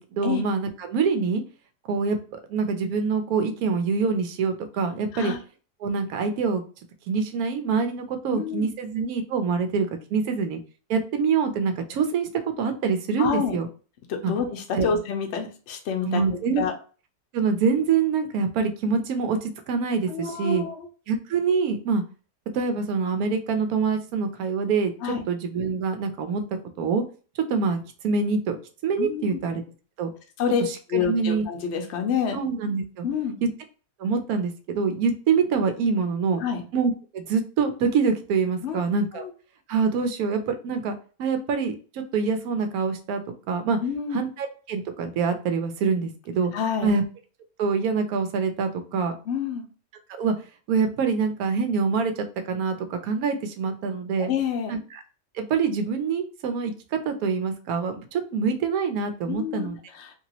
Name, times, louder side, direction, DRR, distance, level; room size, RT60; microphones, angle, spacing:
voice 1, 0.0-1.4 1.9-5.3 5.8-6.6 7.1-10.6 10.9-13.7 14.2-14.3 14.7-14.9 16.0-16.6 17.3-20.6 21.1-22.0 22.5-26.4 26.8-27.0 27.4-29.6 30.0-30.1 30.6-31.5 32.3-33.0 33.4-33.5 34.0-36.4 36.7-39.3 39.7-40.9 41.2-43.2 43.5-43.8 44.1-46.5 46.8-47.0 47.6-49.1 50.2-50.3 50.7-54.3 54.7-55.0 55.3-59.8, right 5 dB, 70° right, 7 dB, 1.0 m, -25 dB
voice 2, 8.3-8.7 13.2-13.6 14.1-16.2 16.6-16.7 20.1-20.9 25.0-25.2 29.0-29.4 30.4-30.6 30.9-32.4 33.0-33.4 36.3-36.6 38.6-38.8 39.1-39.3 43.8-44.2 46.5-46.9 49.3-49.6 54.2-54.7 59.3-59.7 59.9-60.1, left 7 dB, 55° left, 4 dB, 0.8 m, -28 dB
2.9 x 2.9 x 2.8 m, 0.37 s
omnidirectional pair, 1.8 m